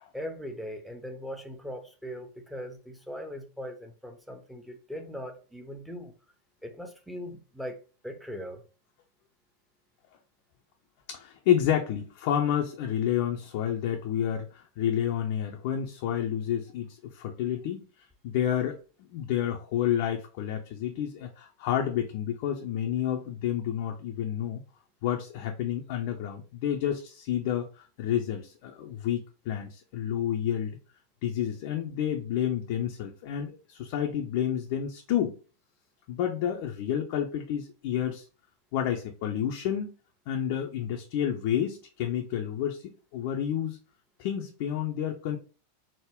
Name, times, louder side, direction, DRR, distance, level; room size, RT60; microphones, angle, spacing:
voice 1, 0.1-6.1 6.6-7.8 8.0-8.6, equal, ahead, 0.6 m, -40 dB
voice 2, 11.1-17.8 18.2-18.8 19.1-24.6 25.0-30.8 31.2-35.3 36.1-38.3 38.7-39.9 40.3-43.8 44.2-45.4, left 10 dB, 45° left, 0.4 m, -30 dB
3.5 x 2.1 x 3.4 m
figure-of-eight pair, 90°, 0 cm